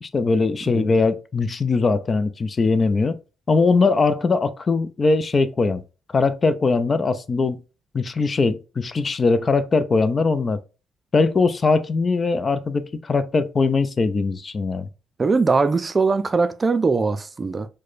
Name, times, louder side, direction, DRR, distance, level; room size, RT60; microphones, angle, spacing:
voice 1, 0.0-3.2 3.5-5.8 6.1-7.6 7.9-10.6 11.1-14.9, left 4 dB, 40° left, 0.4 m, -21 dB
voice 2, 15.2-17.7, right 4 dB, 35° right, 0.4 m, -21 dB
4.7 x 2.2 x 2.5 m
cardioid pair, 70°, 0 cm